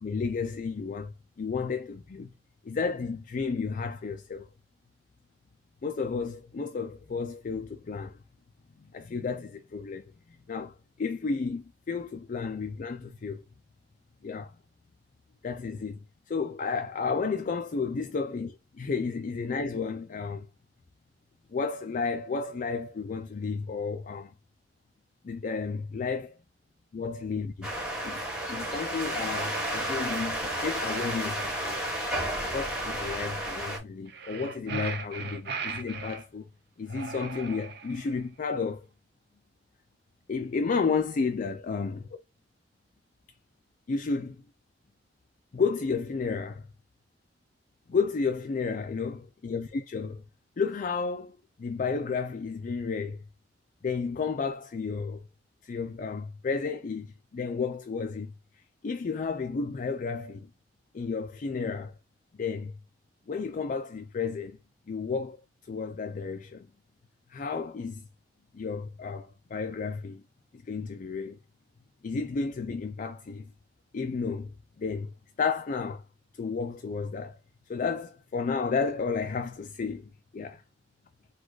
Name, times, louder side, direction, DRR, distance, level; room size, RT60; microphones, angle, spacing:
voice 1, 0.0-2.3 2.6-4.5 5.8-8.2 8.8-13.4 14.2-14.5 15.4-16.0 16.3-20.5 21.5-24.3 25.2-26.4 26.9-27.7 28.0-28.2 28.5-31.8 32.5-36.5 36.8-38.9 40.3-42.0 43.9-44.4 45.5-46.7 47.9-50.2 50.6-53.2 53.8-55.2 55.6-58.3 58.8-60.5 60.9-61.9 62.4-62.7 63.3-64.6 64.9-66.7 67.3-68.1 68.5-70.2 70.5-71.4 72.0-73.5 73.9-76.0 76.4-77.4 77.7-80.6, left 5 dB, 45° left, 0.4 m, -32 dB
sound 1, 27.6-33.8, right 1 dB, 5° right, 1.4 m, -32 dB
sound 2, 34.1-36.2 36.9-38.1, right 5 dB, 60° right, 0.6 m, -38 dB
4.1 x 2.3 x 4.6 m
head